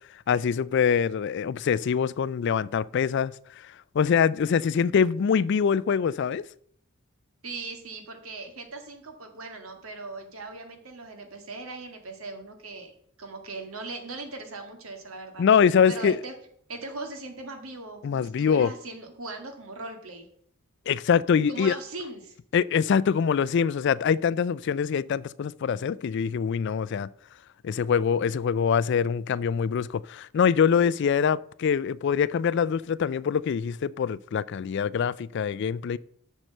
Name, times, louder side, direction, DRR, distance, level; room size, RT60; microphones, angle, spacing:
voice 1, 0.3-3.3 3.9-6.4 15.4-16.2 18.0-18.7 20.9-21.8 22.5-27.1 27.6-36.0, left 7 dB, 55° left, 0.3 m, -24 dB
voice 2, 7.4-15.4 15.9-16.3 16.7-20.3 21.5-22.4, right 3 dB, 80° right, 1.8 m, -39 dB
7.5 x 6.6 x 6.4 m
head